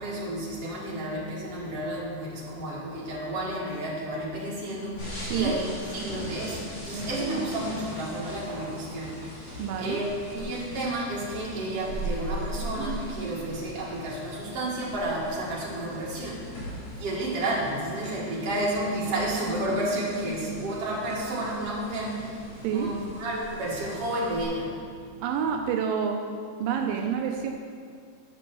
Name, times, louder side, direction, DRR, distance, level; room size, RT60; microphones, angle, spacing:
voice 1, 0.0-16.4 17.0-24.8, right 1 dB, 45° right, -6 dB, 2.5 m, -31 dB
sound 1, 5.0-24.4, equal, 45° left, 3.5 m, -40 dB
voice 2, 9.6-10.0 22.6-22.9 25.2-26.2 26.6-27.5, right 7 dB, 90° right, 3 dB, 2.0 m, -27 dB
9.9 x 6.1 x 5.9 m, 2.1 s
omnidirectional pair, 4.6 m